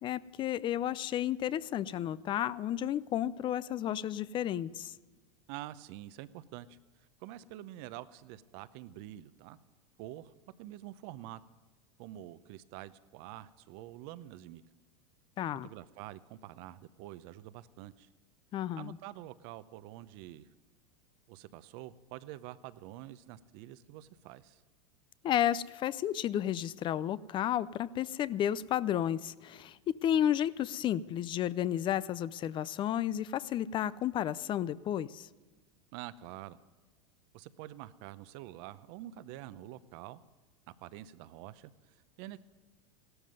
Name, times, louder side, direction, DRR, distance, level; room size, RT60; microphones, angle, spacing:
voice 1, 0.0-4.9 15.4-15.7 18.5-19.0 25.2-35.3, left 11 dB, 30° left, 19 dB, 0.5 m, -32 dB
voice 2, 5.5-9.6 10.0-10.3 10.6-11.4 12.0-14.6 15.6-18.1 18.8-20.5 21.3-24.6 35.9-36.6 37.3-40.2 40.7-42.4, right 14 dB, 55° right, 14 dB, 0.8 m, -47 dB
16.0 x 12.5 x 5.4 m, 1.3 s
supercardioid pair, 120°, 16 cm